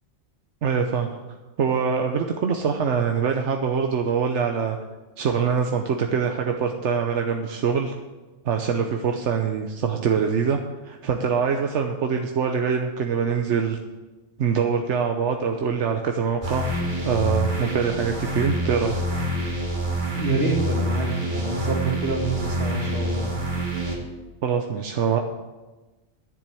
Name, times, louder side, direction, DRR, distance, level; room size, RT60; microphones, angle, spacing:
voice 1, 0.6-1.2 1.6-4.8 5.2-7.9 8.4-13.8 14.4-16.6 17.0-19.0 24.4-25.2, right 6 dB, 90° right, 4 dB, 1.2 m, -24 dB
sound 1, 16.4-24.0, equal, 45° right, 2.4 m, -27 dB
voice 2, 20.1-23.3, right 3 dB, 60° right, 1 dB, 2.3 m, -27 dB
10.5 x 7.2 x 8.4 m, 1.2 s
omnidirectional pair, 1.2 m